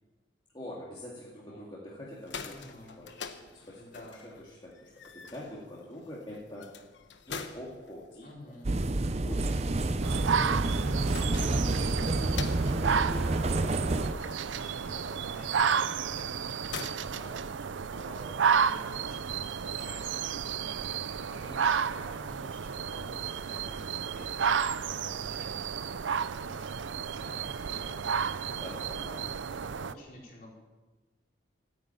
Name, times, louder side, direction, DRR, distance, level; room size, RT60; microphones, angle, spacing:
voice 1, 0.5-2.6 3.0-3.1 3.5-3.8 4.4-6.7 7.3-8.3 9.2-9.8 28.5-28.9, left 1 dB, 25° left, -5 dB, 2.2 m, -44 dB
sound 1, 2.0-18.0, left 5 dB, 75° left, 1.1 m, -47 dB
voice 2, 2.5-2.9 3.7-4.3 8.2-8.7 9.5-25.9 26.4-29.4 29.7-30.5, left 1 dB, 45° left, -3 dB, 4.3 m, -51 dB
sound 2, 8.6-14.1, right 2 dB, 35° right, 0.5 m, -28 dB
sound 3, 10.0-29.9, right 7 dB, 85° right, 0.5 m, -32 dB
14.0 x 9.2 x 8.9 m, 1.2 s
head